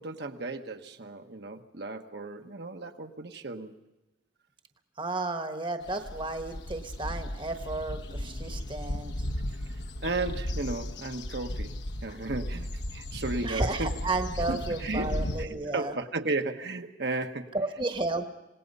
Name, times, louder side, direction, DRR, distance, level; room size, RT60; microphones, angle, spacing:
voice 1, 0.0-3.7 10.0-11.7 12.0-13.9 14.5-17.5, right 3 dB, 60° right, 6 dB, 1.2 m, -34 dB
voice 2, 5.0-9.1 13.4-15.9 17.5-18.3, right 2 dB, 25° right, 7 dB, 1.2 m, -32 dB
sound 1, 5.8-15.5, left 1 dB, 70° left, 1.1 m, -35 dB
27.0 x 18.5 x 5.4 m, 1.0 s
head